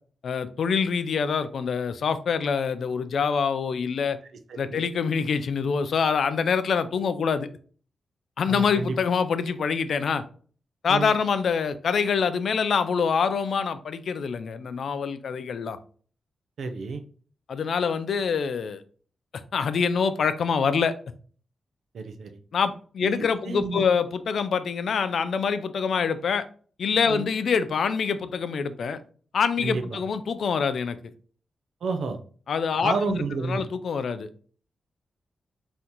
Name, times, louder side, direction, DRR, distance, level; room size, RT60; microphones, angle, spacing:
voice 1, 0.2-4.2 4.6-7.5 8.4-10.2 10.8-15.8 17.5-18.8 19.5-20.9 22.5-26.4 26.8-29.0 29.3-31.0 32.5-34.3, left 6 dB, 60° left, 11 dB, 0.4 m, -25 dB
voice 2, 4.5-4.8 8.5-9.0 10.9-11.1 16.6-17.0 21.9-22.4 23.0-23.9 27.1-27.2 29.6-30.0 31.8-32.2 32.8-33.6, right 4 dB, 70° right, 7 dB, 0.6 m, -30 dB
4.1 x 3.8 x 2.9 m, 0.43 s
wide cardioid pair, 155°, 0 cm